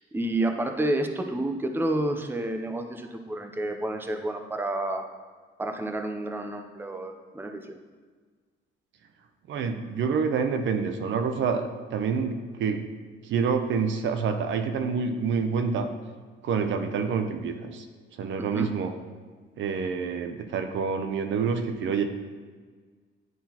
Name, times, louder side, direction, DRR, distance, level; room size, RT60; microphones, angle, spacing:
voice 1, 0.0-5.1 5.6-7.8 18.4-18.7, right 1 dB, 10° right, 5 dB, 0.6 m, -30 dB
voice 2, 9.5-12.8 13.3-15.9 16.4-17.8 18.2-18.9 19.6-22.0, right 5 dB, 70° right, 7 dB, 0.7 m, -27 dB
10.0 x 3.8 x 2.9 m, 1.5 s
cardioid pair, 90°, 20 cm